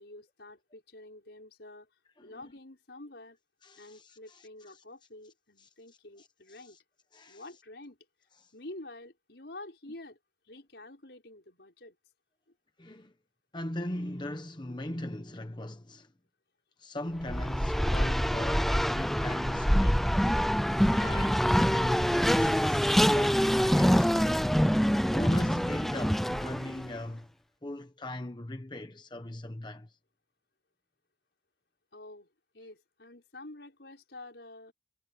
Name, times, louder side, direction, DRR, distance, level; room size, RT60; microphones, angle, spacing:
voice 1, 0.0-1.9 2.2-3.4 3.8-6.8 7.3-8.0 8.5-10.2 10.5-12.0 31.9-32.3 32.5-34.7, left 2 dB, 75° left, 5.2 m, -48 dB
voice 2, 2.2-2.5 3.6-4.8 5.6-5.7 6.2-6.8 7.1-7.4 8.4-8.5 12.8-13.1 13.5-16.1 16.8-20.2 20.8-24.5 25.1-27.3 27.6-30.0, left 1 dB, 25° left, 1.0 m, -39 dB
Race car auto racing, 17.2-26.9, equal, ahead, 0.5 m, -25 dB
head